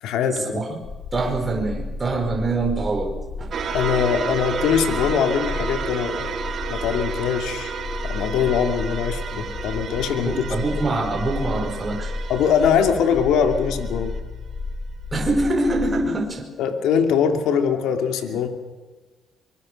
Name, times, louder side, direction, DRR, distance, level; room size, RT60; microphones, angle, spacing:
voice 1, 0.0-0.6 3.7-6.4 6.7-7.8 8.0-10.5 12.3-14.1 16.6-18.5, left 7 dB, 85° left, 6 dB, 2.7 m, -22 dB
sound 1, 0.8-16.1, left 3 dB, 50° left, 2.9 m, -32 dB
voice 2, 1.1-3.5 10.2-12.1 15.1-16.5, right 2 dB, 25° right, 1 dB, 5.0 m, -24 dB
sound 2, 3.5-14.2, right 6 dB, 60° right, 2.9 m, -32 dB
25.0 x 22.5 x 6.6 m, 1.3 s
cardioid pair, 90°, 0 cm